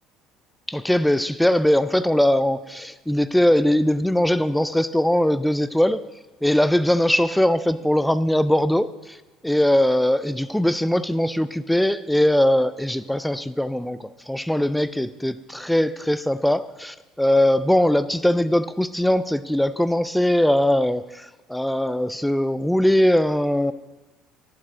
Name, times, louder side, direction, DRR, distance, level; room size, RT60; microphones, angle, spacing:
voice 1, 0.7-6.0 6.4-9.2 9.4-23.7, left 1 dB, ahead, 14 dB, 0.3 m, -21 dB
11.5 x 7.6 x 5.0 m, 1.2 s
cardioid pair, 155°, 0 cm